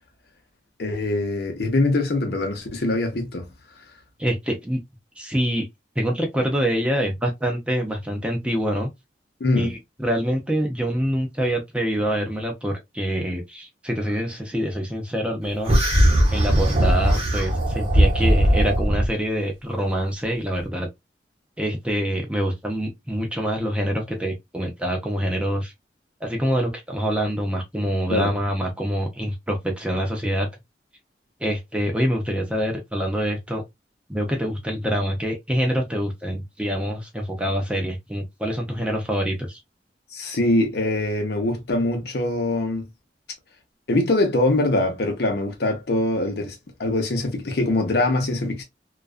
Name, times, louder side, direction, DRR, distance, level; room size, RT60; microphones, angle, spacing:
voice 1, 0.8-3.5 9.4-9.7 28.1-28.3 40.1-42.9 43.9-48.6, left 2 dB, 60° left, 0.7 m, -23 dB
voice 2, 4.2-4.8 5.2-5.7 6.0-8.9 9.5-15.9 16.3-20.9 21.6-25.7 26.2-30.5 31.4-33.6 34.1-39.6, equal, 5° right, 0.5 m, -25 dB
sound 1, 15.7-19.1, right 1 dB, 35° right, 0.9 m, -19 dB
2.4 x 2.2 x 2.3 m
head